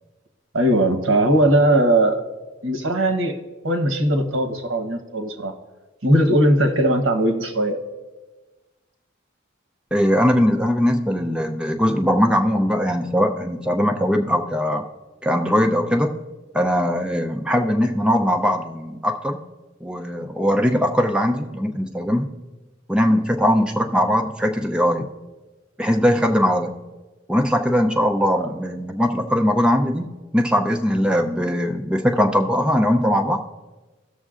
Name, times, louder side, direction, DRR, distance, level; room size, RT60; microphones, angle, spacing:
voice 1, 0.5-2.3 2.6-3.4 3.6-5.5 6.0-7.8 28.3-28.5, right 1 dB, 90° right, 7 dB, 1.1 m, -19 dB
voice 2, 9.9-14.8 15.2-16.1 16.5-19.4 19.8-22.3 22.9-25.1 25.8-26.8 27.3-30.1 30.3-33.4, equal, 5° right, 3 dB, 0.5 m, -20 dB
17.5 x 6.4 x 2.5 m, 1.2 s
head